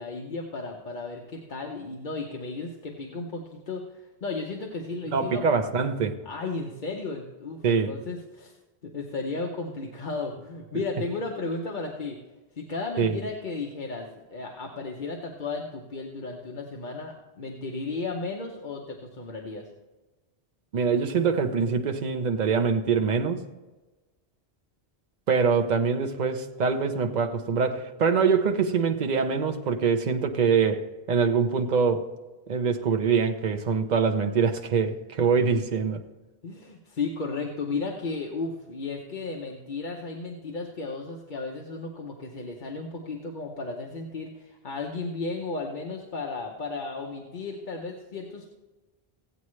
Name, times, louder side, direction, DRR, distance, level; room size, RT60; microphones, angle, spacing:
voice 1, 0.0-5.5 6.2-8.5 8.8-12.2 12.5-19.7 36.4-48.5, left 3 dB, 50° left, 1.0 m, -34 dB
voice 2, 5.1-6.1 7.6-7.9 13.0-13.2 20.7-23.4 25.3-32.1 32.5-36.0, right 5 dB, 45° right, 0.8 m, -24 dB
16.0 x 8.5 x 3.2 m
omnidirectional pair, 1.1 m